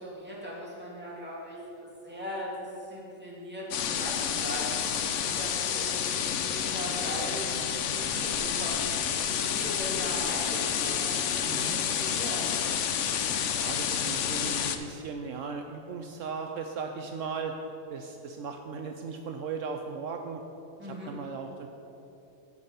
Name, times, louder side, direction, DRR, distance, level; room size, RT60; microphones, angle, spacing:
voice 1, 0.0-12.5 20.8-21.1, equal, 5° right, -6 dB, 2.3 m, -39 dB
sound 1, 3.7-14.8, left 8 dB, 65° left, 0.9 m, -29 dB
voice 2, 11.4-11.8 13.5-17.6 17.9-20.4 20.8-21.7, right 5 dB, 70° right, 4 dB, 1.0 m, -37 dB
15.5 x 5.4 x 5.6 m, 3.0 s
omnidirectional pair, 1.4 m